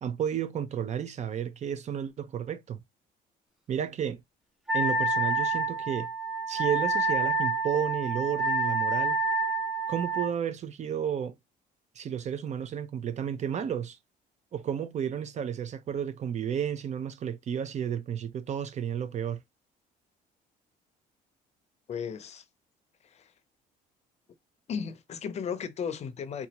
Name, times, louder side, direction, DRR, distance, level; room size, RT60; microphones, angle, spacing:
voice 1, 0.0-2.8 3.7-4.2 4.7-6.1 6.5-9.2 9.9-11.3 12.0-14.0 14.5-19.4, right 8 dB, 45° right, 0.6 m, -32 dB
Wind instrument woodwind instrument, 4.7-10.3, right 3 dB, ahead, 0.6 m, -28 dB
voice 2, 21.9-22.4 23.0-23.3 24.7-26.5, left 7 dB, 40° left, 0.6 m, -35 dB
4.0 x 2.4 x 2.9 m
cardioid pair, 110°, 17 cm